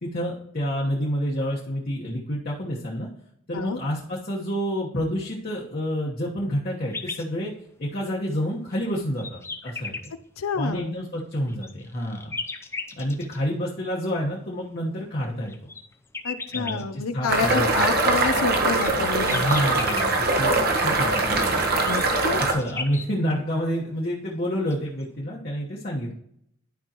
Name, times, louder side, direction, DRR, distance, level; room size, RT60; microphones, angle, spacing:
voice 1, 0.0-3.1 3.5-7.5 7.8-10.0 10.6-12.3 13.0-15.5 16.5-17.8 19.3-21.6 22.4-26.1, equal, 45° left, -5 dB, 1.2 m, -28 dB
sound 1, 6.9-7.2 8.0-8.1 8.7-10.1 11.2-13.4 15.0-16.8 18.3-20.1 21.6-23.1 24.3-24.4 24.7-25.0, left 4 dB, 10° left, 0.5 m, -35 dB
voice 2, 10.4-10.9 16.2-19.5 21.8-22.4, left 5 dB, 80° left, 12 dB, 0.6 m, -28 dB
sound 2, 17.3-22.5, right 2 dB, 45° right, 1.1 m, -22 dB
11.5 x 5.4 x 3.0 m, 0.74 s
head